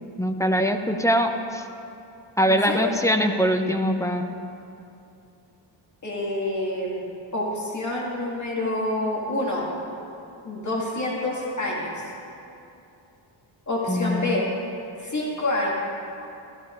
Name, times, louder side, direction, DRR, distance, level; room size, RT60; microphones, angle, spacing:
voice 1, 0.2-1.6 2.4-4.3 13.9-14.5, equal, 5° left, 5 dB, 0.6 m, -23 dB
voice 2, 2.5-2.9 6.0-7.0 7.3-9.7 10.4-12.0 13.7-14.5 15.0-15.7, left 1 dB, 40° left, -4 dB, 2.1 m, -27 dB
14.5 x 14.0 x 2.5 m, 2.7 s
cardioid pair, 100°, 45 cm